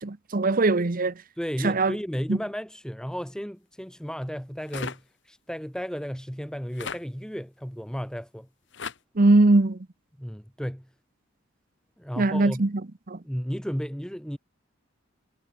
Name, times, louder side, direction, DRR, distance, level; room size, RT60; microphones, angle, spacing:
voice 1, 0.0-1.1 1.6-1.9 2.3-2.4 9.2-9.8 12.2-12.7 13.1-13.2, right 2 dB, 45° right, 0.9 m, -21 dB
voice 2, 1.4-8.5 10.2-10.9 12.0-12.6 13.2-14.4, equal, 5° left, 3.1 m, -34 dB
sound 1, 4.7-5.0 6.7-7.0 8.7-9.0, left 5 dB, 65° left, 1.8 m, -35 dB
head